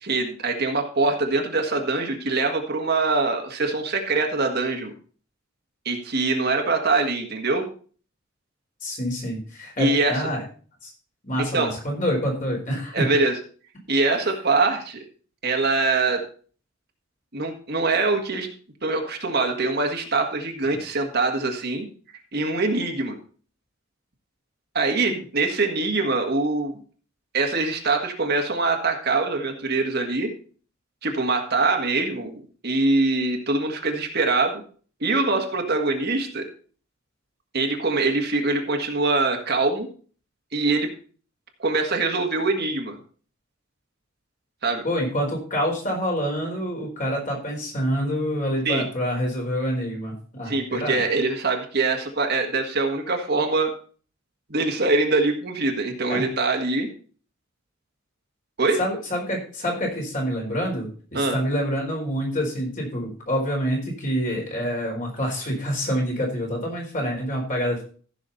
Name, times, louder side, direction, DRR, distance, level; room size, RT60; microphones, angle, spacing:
voice 1, 0.0-4.9 5.8-7.7 9.8-10.1 11.4-11.7 12.9-13.3 13.9-15.0 15.4-16.2 17.3-18.5 18.8-21.9 22.3-23.2 24.7-26.8 27.3-30.3 31.0-34.6 35.0-36.5 37.5-39.9 40.5-40.9 41.6-43.0 44.6-44.8 48.6-48.8 50.5-53.7 54.5-56.9 58.6-58.8 61.1-61.4, right 3 dB, 55° right, 3 dB, 1.8 m, -23 dB
voice 2, 8.8-10.4 10.8-10.9 11.2-13.1 44.8-51.0 56.1-56.2 58.8-67.8, equal, 40° left, -1 dB, 4.3 m, -27 dB
15.0 x 6.2 x 4.1 m, 0.41 s
head